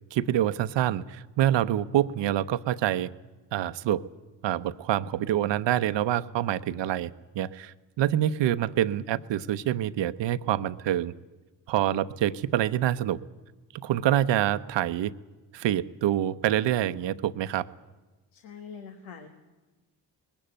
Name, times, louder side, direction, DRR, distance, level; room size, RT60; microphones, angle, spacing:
voice 1, 0.1-3.1 3.5-4.0 4.4-11.1 11.7-13.2 13.7-15.1 15.5-17.7, right 12 dB, 70° right, 13 dB, 0.9 m, -26 dB
voice 2, 18.3-19.3, left 6 dB, 90° left, 5 dB, 1.6 m, -44 dB
20.0 x 16.0 x 9.0 m, 1.2 s
supercardioid pair, 50°, 46 cm